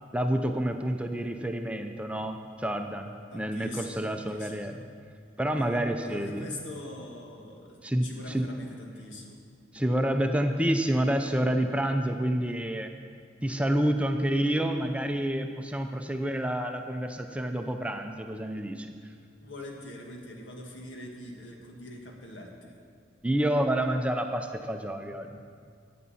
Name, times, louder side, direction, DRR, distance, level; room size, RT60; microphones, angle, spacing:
voice 1, 0.1-4.8 5.4-6.5 7.8-8.5 9.7-12.9 13.4-18.9 23.2-25.5, right 1 dB, 5° right, 5 dB, 0.5 m, -28 dB
voice 2, 3.3-4.7 5.5-9.4 19.4-22.7, left 1 dB, 90° left, 0 dB, 1.7 m, -43 dB
14.5 x 9.4 x 4.2 m, 2.1 s
head